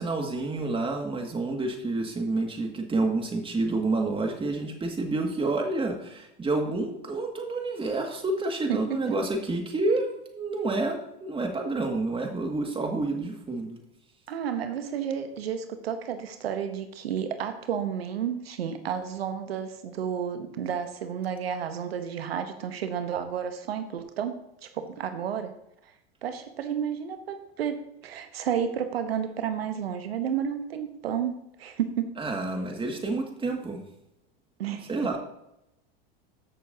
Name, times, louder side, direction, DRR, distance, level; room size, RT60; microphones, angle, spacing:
voice 1, 0.0-10.1 10.4-13.8 32.2-33.8 34.9-35.2, right 2 dB, 20° right, 3 dB, 2.0 m, -29 dB
voice 2, 14.3-25.5 26.2-31.3 31.6-32.1 34.6-34.9, right 8 dB, 90° right, 8 dB, 0.9 m, -31 dB
14.5 x 6.6 x 2.8 m, 0.83 s
hypercardioid pair, 100°, 30 cm